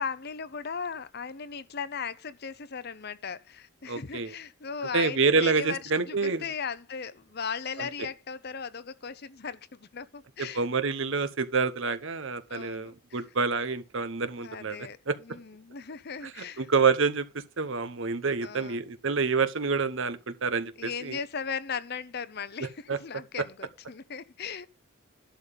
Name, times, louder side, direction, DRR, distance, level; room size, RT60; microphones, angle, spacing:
voice 1, 0.0-10.6 12.5-13.2 14.4-16.7 18.4-18.9 20.8-24.7, left 6 dB, 45° left, 0.7 m, -37 dB
voice 2, 3.9-4.3 4.9-6.4 7.8-7.9 10.4-15.2 16.6-17.3 17.6-21.2 22.9-23.0, right 4 dB, 60° right, 0.9 m, -27 dB
11.5 x 3.9 x 7.5 m
head